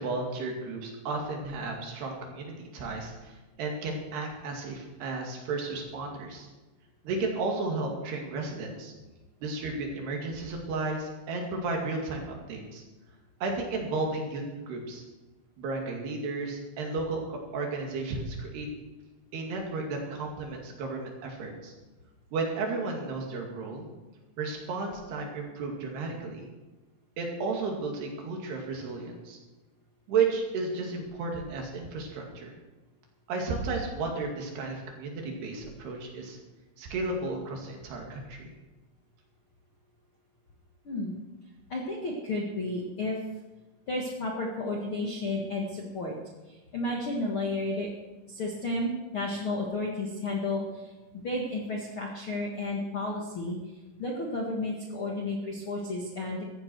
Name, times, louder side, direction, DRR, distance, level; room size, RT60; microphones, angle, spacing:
voice 1, 0.0-6.5 7.0-8.9 9.4-12.8 13.4-15.0 15.6-18.7 19.3-21.7 22.3-23.9 24.4-26.4 27.2-29.4 30.1-32.5 33.3-36.4 36.8-38.5, right 3 dB, 70° right, 1 dB, 4.4 m, -33 dB
voice 2, 41.7-43.2 43.9-46.2 46.5-47.9 48.3-53.6 54.0-56.4, left 2 dB, 55° left, -1 dB, 1.4 m, -32 dB
15.5 x 14.0 x 4.6 m, 1.1 s
omnidirectional pair, 4.9 m